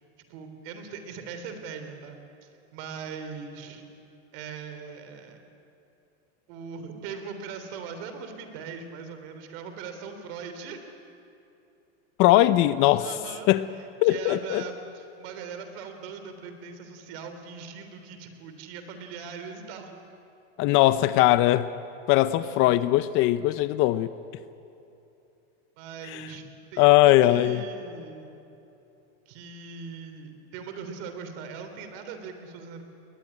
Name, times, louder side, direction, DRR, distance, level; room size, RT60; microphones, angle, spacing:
voice 1, 0.3-3.8 4.3-5.4 6.5-10.8 13.0-13.5 13.8-20.0 22.4-22.8 25.8-26.5 26.7-28.4 29.3-32.8, right 6 dB, 55° right, 8 dB, 3.5 m, -40 dB
voice 2, 12.2-13.1 13.5-13.7 14.0-14.6 20.6-21.7 22.1-24.1 26.1-26.3 26.8-27.6, left 15 dB, 35° left, 15 dB, 0.6 m, -20 dB
21.0 x 20.5 x 9.9 m, 2.8 s
supercardioid pair, 150°, 35 cm